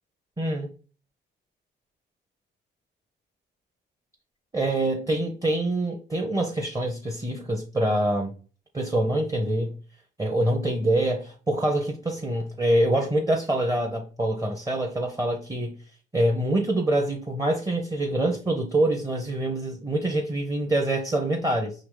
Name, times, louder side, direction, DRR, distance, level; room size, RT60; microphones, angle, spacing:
voice 1, 0.4-0.7 4.5-8.3 8.7-9.7 10.2-15.7 16.1-21.7, right 1 dB, 20° right, 0.8 m, -25 dB
4.8 x 2.9 x 3.7 m
cardioid pair, 90°, 20 cm